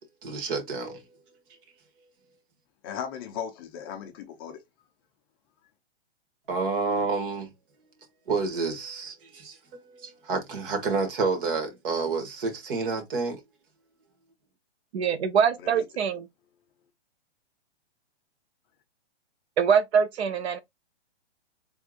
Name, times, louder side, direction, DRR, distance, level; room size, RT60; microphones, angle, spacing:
voice 1, 0.2-1.0 6.5-7.5 8.3-13.4, right 4 dB, 55° right, 1.8 m, -29 dB
voice 2, 2.8-4.6 15.6-15.8, left 8 dB, 20° left, 0.5 m, -37 dB
voice 3, 14.9-16.3 19.6-20.6, right 7 dB, 75° right, 0.8 m, -23 dB
4.7 x 3.5 x 2.4 m
hypercardioid pair, 145°, 32 cm